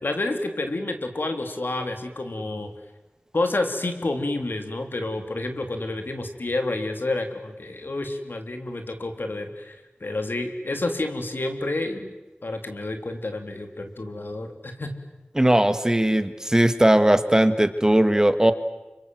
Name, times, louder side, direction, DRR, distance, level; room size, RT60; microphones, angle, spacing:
voice 1, 0.0-2.7 3.3-12.1 12.4-14.9, left 2 dB, 65° left, 6 dB, 3.4 m, -29 dB
voice 2, 15.3-18.5, right 1 dB, 15° right, 11 dB, 1.6 m, -19 dB
29.0 x 26.0 x 7.9 m, 1.1 s
wide cardioid pair, 70°, 4 cm